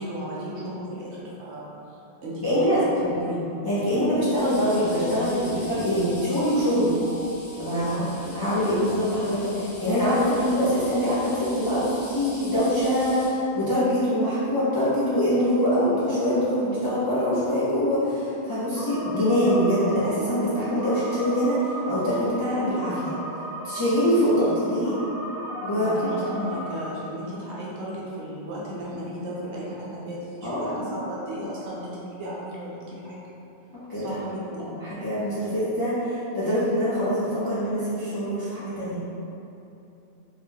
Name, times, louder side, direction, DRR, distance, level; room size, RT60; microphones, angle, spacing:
voice 1, 0.0-1.7 2.2-2.6 3.0-3.4 5.5-5.6 7.7-8.7 9.4-9.5 24.2-24.5 25.7-33.2 34.0-34.8, equal, 75° right, -6 dB, 1.0 m, -35 dB
voice 2, 2.4-2.8 3.6-6.9 7.6-7.9 8.3-23.1 23.6-25.0 25.6-26.1 30.4-30.9 33.9-34.0 34.8-39.0, equal, 30° left, -12 dB, 0.4 m, -24 dB
sound 1, 4.4-13.3, left 1 dB, 70° left, 1.0 m, -42 dB
sound 2, 18.7-26.9, right 1 dB, 10° right, 1.2 m, -35 dB
3.3 x 2.1 x 2.7 m, 2.8 s
omnidirectional pair, 1.2 m